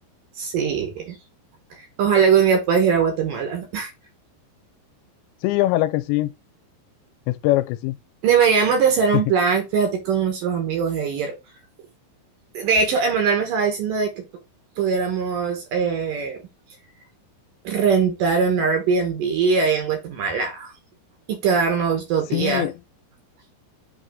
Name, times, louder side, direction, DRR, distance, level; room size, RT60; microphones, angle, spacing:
voice 1, 0.4-1.2 1.7-3.9 8.2-11.3 12.5-14.2 14.8-16.4 17.6-20.7 21.3-22.7, right 6 dB, 65° right, 2.4 m, -21 dB
voice 2, 5.4-6.3 7.3-8.0 22.3-22.7, left 17 dB, 85° left, 2.8 m, -22 dB
8.4 x 3.7 x 3.6 m
omnidirectional pair, 5.1 m